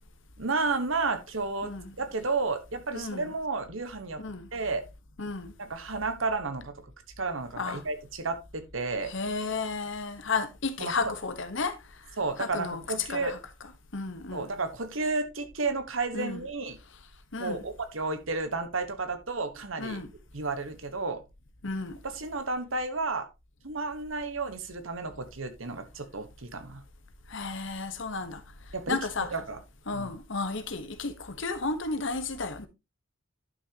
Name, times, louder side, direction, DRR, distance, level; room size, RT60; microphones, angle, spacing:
voice 1, 0.4-4.2 4.5-4.8 5.6-6.8 7.2-9.1 10.8-10.9 12.2-13.3 14.3-16.8 17.4-20.0 20.3-21.2 22.0-23.3 23.6-26.8 28.7-29.0 29.3-29.6 29.9-30.1, right 3 dB, 70° right, 1.3 m, -32 dB
voice 2, 1.6-1.9 2.9-3.3 4.2-4.5 5.2-5.5 7.6-7.8 9.1-11.8 12.4-13.4 13.9-14.5 16.1-16.4 17.3-17.6 19.8-20.1 21.6-22.0 27.3-28.4 28.9-29.3 29.9-32.7, left 4 dB, 60° left, 1.2 m, -33 dB
11.0 x 6.3 x 2.9 m
head